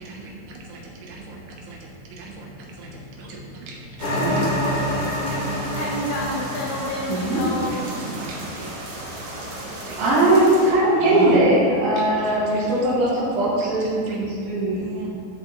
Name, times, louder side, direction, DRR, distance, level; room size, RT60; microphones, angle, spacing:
voice 1, 0.0-3.1 3.8-5.9 7.4-8.7 9.1-10.0 11.0-11.4 12.0-12.8 13.1-13.2 14.1-14.2 14.8-15.1, right 2 dB, 75° right, -1 dB, 3.0 m, -35 dB
sound 1, 4.0-8.5, left 1 dB, 55° left, 3.9 m, -28 dB
sound 2, 4.0-10.7, right 1 dB, 60° right, 1.6 m, -36 dB
voice 2, 5.7-7.8, left 1 dB, 75° left, -5 dB, 2.0 m, -29 dB
voice 3, 7.1-7.5 8.5-8.7 9.2-9.3 10.0-14.8, right 1 dB, 90° right, -11 dB, 4.6 m, -20 dB
14.0 x 6.4 x 3.1 m, 2.4 s
omnidirectional pair, 5.2 m